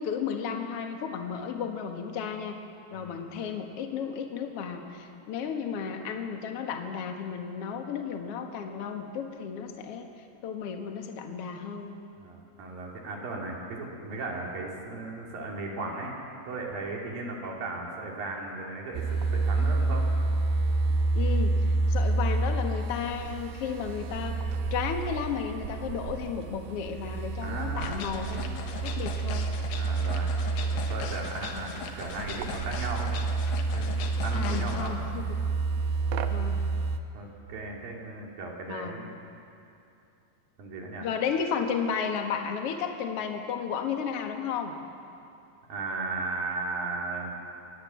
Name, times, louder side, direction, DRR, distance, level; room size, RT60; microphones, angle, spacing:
voice 1, 0.0-2.6 2.9-10.1 10.4-11.9 21.1-21.6 21.9-24.4 24.7-29.5 31.5-31.7 34.3-35.4 36.3-36.6 38.7-39.0 41.0-44.7, left 7 dB, 60° left, 4 dB, 1.6 m, -33 dB
voice 2, 2.9-3.3 12.2-16.1 16.5-20.1 27.4-28.0 29.7-30.4 30.7-33.1 33.7-35.0 37.1-39.1 40.6-41.1 45.7-47.3, right 3 dB, 55° right, -1 dB, 4.1 m, -36 dB
sound 1, 18.9-37.0, right 3 dB, 75° right, 2.9 m, -29 dB
sound 2, 27.8-34.9, left 6 dB, 75° left, 3.4 m, -40 dB
24.5 x 19.0 x 7.5 m, 2.6 s
omnidirectional pair, 5.0 m